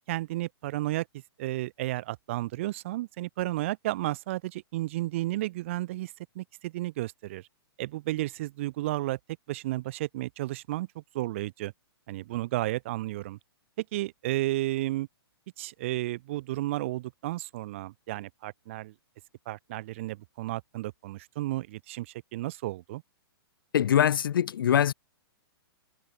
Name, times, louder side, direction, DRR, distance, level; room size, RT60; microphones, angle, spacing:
voice 1, 0.1-1.1 1.4-7.5 7.8-9.2 9.5-11.7 12.1-13.4 13.8-15.1 15.6-18.9 19.5-23.0, right 17 dB, 30° right, 2.7 m, -32 dB
voice 2, 23.7-24.9, left 9 dB, 55° left, 0.4 m, -23 dB
hypercardioid pair, 175°, 13 cm